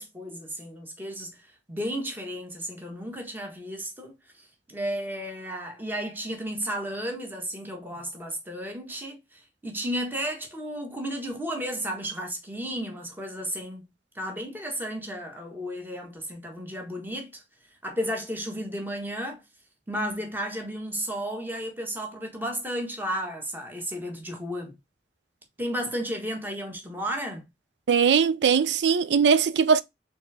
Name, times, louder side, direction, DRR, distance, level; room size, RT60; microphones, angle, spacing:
voice 1, 0.0-13.9 14.1-17.4 17.8-19.4 19.9-24.7 25.6-27.4, equal, 10° right, 1.3 m, -33 dB
voice 2, 27.9-29.8, right 6 dB, 75° right, 0.5 m, -20 dB
4.3 x 3.4 x 3.2 m
head